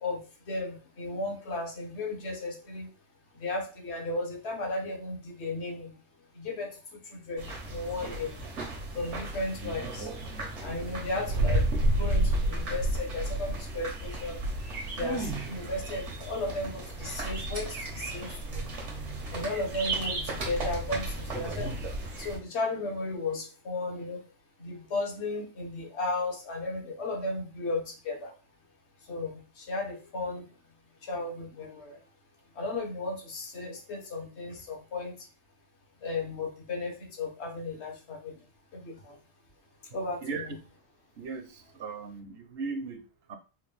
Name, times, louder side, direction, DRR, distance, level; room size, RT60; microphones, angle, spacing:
voice 1, 0.0-2.9 3.3-5.9 6.3-8.3 8.9-10.1 10.6-14.4 14.9-18.7 19.3-21.7 22.2-24.2 24.6-28.3 29.0-30.5 31.0-32.0 32.5-35.3 36.0-38.4 38.7-39.2 39.9-40.6, left 2 dB, 75° left, 1 dB, 1.3 m, -35 dB
sound 1, 7.4-22.4, right 1 dB, 90° right, 1.4 m, -32 dB
voice 2, 41.2-43.4, right 4 dB, 65° right, 7 dB, 0.8 m, -37 dB
4.4 x 2.2 x 3.3 m, 0.33 s
omnidirectional pair, 1.2 m